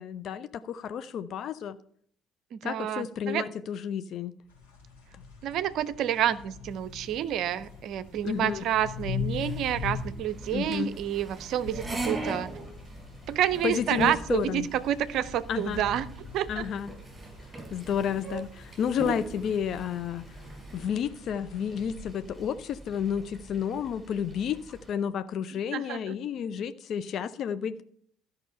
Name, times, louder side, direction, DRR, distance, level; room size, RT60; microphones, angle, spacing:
voice 1, 0.0-1.8 2.6-4.3 8.2-8.6 10.5-10.9 13.6-14.7 15.5-15.8 16.5-16.9 17.7-20.2 20.7-24.6 24.9-27.8, left 8 dB, 50° left, 0.4 m, -31 dB
voice 2, 2.5-3.5 5.4-12.5 13.3-16.1 16.3-16.7 25.5-26.2, right 11 dB, 55° right, 0.5 m, -29 dB
sound 1, 4.5-22.3, left 6 dB, 75° left, 3.6 m, -42 dB
sound 2, 6.6-20.9, right 2 dB, 25° right, 4.5 m, -41 dB
sound 3, 10.3-24.9, right 2 dB, 5° right, 4.4 m, -51 dB
13.0 x 5.6 x 5.6 m
figure-of-eight pair, 50°, 0 cm